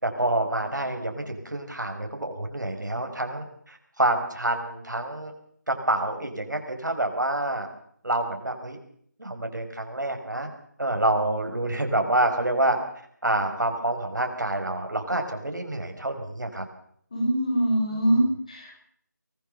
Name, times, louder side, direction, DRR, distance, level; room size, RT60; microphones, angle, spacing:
voice 1, 0.0-5.3 5.7-7.7 8.0-8.8 9.2-10.5 10.8-12.8 13.2-16.6 17.9-18.0, right 1 dB, 75° right, 4 dB, 5.5 m, -27 dB
voice 2, 17.1-18.9, right 1 dB, 20° left, 0 dB, 6.3 m, -24 dB
23.5 x 16.0 x 6.9 m, 0.63 s
figure-of-eight pair, 175°, 10 cm